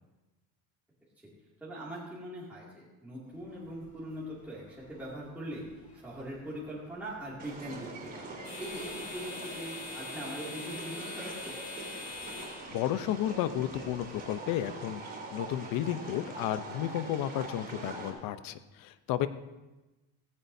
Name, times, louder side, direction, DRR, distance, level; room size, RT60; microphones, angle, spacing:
voice 1, 1.6-4.6 4.9-5.6 6.0-8.3 8.6-11.6, right 1 dB, 5° right, -8 dB, 2.5 m, -41 dB
sound 1, 3.3-14.6, left 3 dB, 25° left, 4.9 m, -46 dB
sound 2, 7.4-18.1, right 2 dB, 25° right, 3.9 m, -43 dB
voice 2, 12.7-19.3, left 12 dB, 70° left, 12 dB, 0.8 m, -33 dB
17.0 x 16.0 x 2.7 m, 1.1 s
cardioid pair, 165°, 35 cm